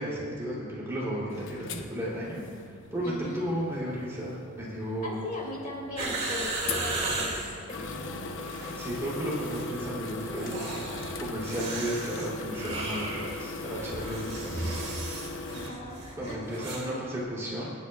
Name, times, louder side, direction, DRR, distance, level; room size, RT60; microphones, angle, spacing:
voice 1, 0.0-2.4 2.9-5.2 8.7-14.5 16.1-17.7, equal, 15° right, -7 dB, 3.2 m, -34 dB
sound 1, 1.3-15.7, left 2 dB, 60° left, 0.8 m, -39 dB
voice 2, 3.0-3.4 5.0-8.0 15.5-17.0, left 1 dB, 40° left, -3 dB, 2.8 m, -39 dB
sound 2, 6.0-7.6 8.4-9.0 9.3-9.7 10.3-16.9 17.2-17.3, right 2 dB, 30° right, 2.4 m, -35 dB
26.0 x 9.9 x 2.4 m, 2.1 s
head